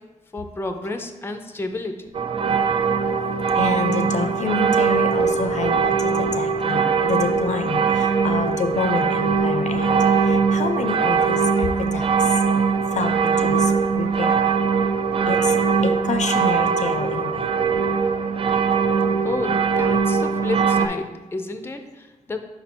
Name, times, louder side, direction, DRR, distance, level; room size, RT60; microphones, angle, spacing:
voice 1, 0.3-2.2 19.2-22.4, left 2 dB, 20° left, 7 dB, 0.5 m, -31 dB
sound 1, 2.1-20.9, right 5 dB, 45° right, 0.4 m, -21 dB
voice 2, 3.6-12.4 12.9-14.5 15.3-15.6 15.8-17.5 18.5-18.6, left 4 dB, 70° left, 7 dB, 0.5 m, -28 dB
5.4 x 4.2 x 4.3 m, 1.2 s
wide cardioid pair, 100°, 13 cm